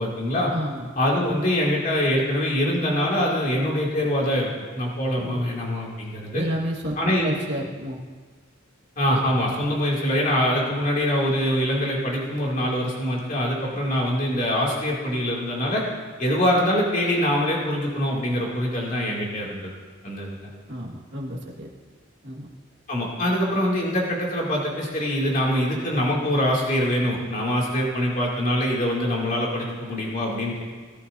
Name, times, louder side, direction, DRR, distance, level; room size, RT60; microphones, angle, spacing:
voice 1, 0.0-0.5 1.0-6.4 7.0-7.3 9.0-15.8 16.2-19.7 20.0-20.4 22.9-30.6, equal, 40° left, -3 dB, 2.6 m, -24 dB
voice 2, 0.5-0.9 1.2-1.4 5.1-5.4 6.3-8.0 20.7-21.7 22.2-22.5, equal, 55° right, -3 dB, 1.8 m, -31 dB
18.0 x 11.5 x 2.7 m, 1.5 s
head